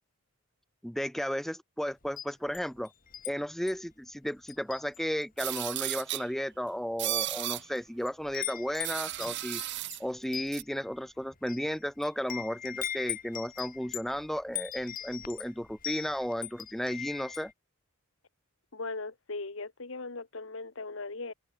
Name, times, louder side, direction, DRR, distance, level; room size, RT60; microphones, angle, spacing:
voice 1, 0.8-2.9 3.3-9.6 10.0-17.5, equal, ahead, 0.5 m, -34 dB
Wind chime, 2.0-3.3 3.7-3.9 4.5-5.2 5.5-5.8 6.5-6.6 7.3-17.5, left 10 dB, 40° left, 5.0 m, -40 dB
sound 1, 5.4-6.3 7.0-7.6 8.8-10.0 10.5-10.6, right 16 dB, 55° right, 0.6 m, -34 dB
voice 2, 18.7-21.3, left 3 dB, 60° left, 1.4 m, -38 dB
head